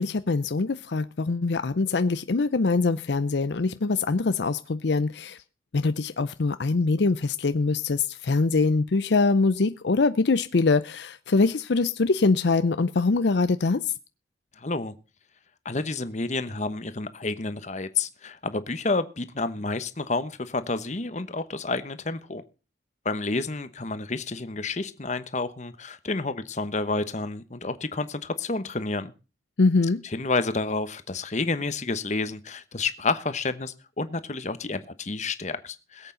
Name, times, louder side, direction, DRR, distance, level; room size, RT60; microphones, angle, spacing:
voice 1, 0.0-5.4 5.7-13.9 29.6-30.0, left 3 dB, 70° left, 0.6 m, -23 dB
voice 2, 14.6-14.9 15.6-22.4 23.0-29.1 30.0-36.1, left 3 dB, 40° left, 1.1 m, -30 dB
21.5 x 8.1 x 3.9 m
head